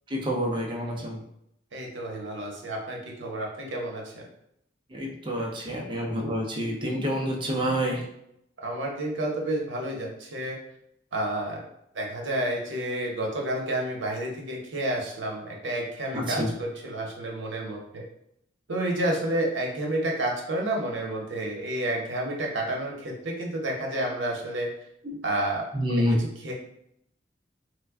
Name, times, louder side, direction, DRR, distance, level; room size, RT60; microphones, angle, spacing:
voice 1, 0.1-1.2 4.9-8.0 16.1-16.5 25.0-25.2 25.7-26.2, equal, 25° right, 0 dB, 0.6 m, -28 dB
voice 2, 1.7-4.3 8.6-10.6 11.1-11.6 11.9-18.0 18.7-24.7 25.2-25.6 25.9-26.5, right 1 dB, 85° right, -1 dB, 0.8 m, -30 dB
3.3 x 2.2 x 3.4 m, 0.77 s
head